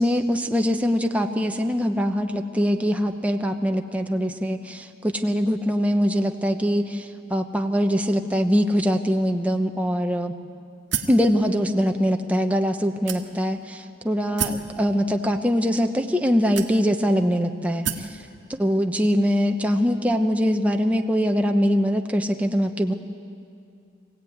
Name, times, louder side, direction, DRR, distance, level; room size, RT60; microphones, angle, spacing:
voice 1, 0.0-10.3 11.1-18.2 18.5-22.9, equal, 5° right, 4 dB, 0.9 m, -23 dB
sound 1, 10.9-11.3 12.0-12.1 13.1-13.6 14.4-14.7 15.6-15.7 16.5-17.1 17.8-18.2, right 7 dB, 65° right, 1.5 m, -29 dB
24.5 x 16.5 x 9.4 m, 2.5 s
head